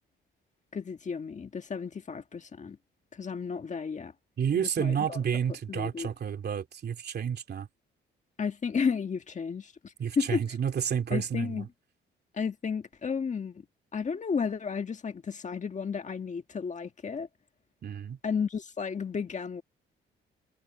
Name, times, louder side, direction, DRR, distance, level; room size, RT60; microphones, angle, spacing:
voice 1, 0.7-2.8 3.1-4.1 4.5-5.2 5.7-6.1 8.4-10.4 11.1-11.7 12.3-13.6 13.9-17.3 18.2-19.6, left 6 dB, 35° left, 1.7 m, -33 dB
voice 2, 4.4-7.7 10.0-11.7 17.8-18.2, right 8 dB, 55° right, 2.6 m, -30 dB
cardioid pair, 90°, 20 cm